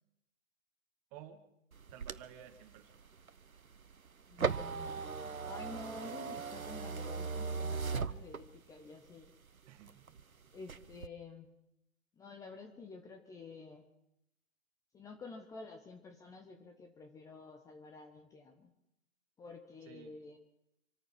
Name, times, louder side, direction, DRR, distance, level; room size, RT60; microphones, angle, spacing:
voice 1, 1.1-1.4 1.9-2.9 9.7-10.2 19.9-20.1, right 10 dB, 25° right, 9 dB, 1.8 m, -53 dB
sound 1, 1.7-8.8 9.2-10.2 10.6-11.1, right 5 dB, 85° right, 1.1 m, -39 dB
voice 2, 4.3-5.0 5.4-9.3 10.5-11.5 12.2-13.9 14.9-18.7 19.4-20.4, left 4 dB, 10° left, 4 dB, 1.0 m, -50 dB
26.5 x 9.3 x 5.9 m, 0.83 s
figure-of-eight pair, 130°, 41 cm